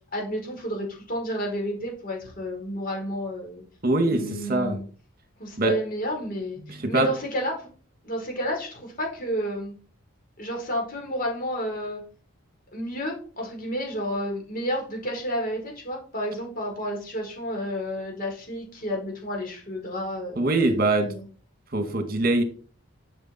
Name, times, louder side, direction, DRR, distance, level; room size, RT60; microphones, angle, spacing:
voice 1, 0.1-3.6 4.1-4.8 5.4-7.7 8.0-9.7 10.4-12.0 12.7-20.4 21.0-21.2, equal, 40° left, 1 dB, 4.7 m, -31 dB
voice 2, 3.8-4.8 5.6-5.7 6.6-7.1 20.4-21.1 21.7-22.4, right 2 dB, 45° right, 7 dB, 2.1 m, -23 dB
12.0 x 7.0 x 4.5 m, 0.41 s
head